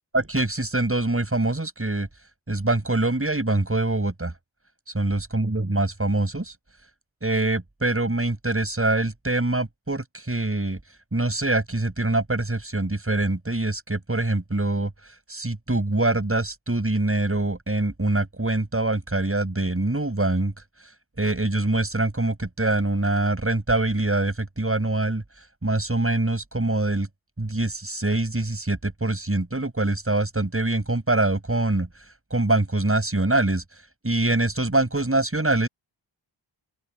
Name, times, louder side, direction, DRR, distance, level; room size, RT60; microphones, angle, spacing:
voice 1, 0.1-2.1 2.5-4.3 4.9-6.5 7.2-10.8 11.1-14.9 15.3-20.5 21.2-25.2 25.6-27.1 27.4-31.9 32.3-33.6 34.0-35.7, right 2 dB, 25° right, 7.8 m, -24 dB
open air
cardioid pair, 55°, 48 cm